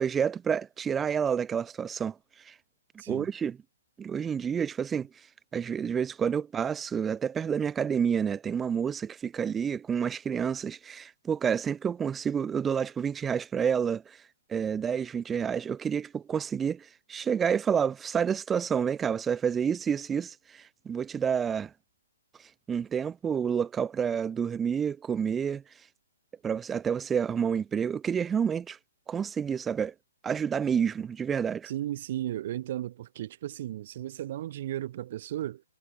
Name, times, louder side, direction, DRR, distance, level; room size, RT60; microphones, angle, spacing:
voice 1, 0.0-2.1 2.5-2.6 3.1-3.6 4.0-5.1 5.5-14.2 14.5-21.7 22.7-25.6 26.4-28.8 29.1-29.9 30.2-31.7, right 7 dB, 15° right, 1.5 m, -29 dB
voice 2, 3.0-3.3 31.6-35.6, right 13 dB, 45° right, 4.3 m, -35 dB
figure-of-eight pair, 125°, 0 cm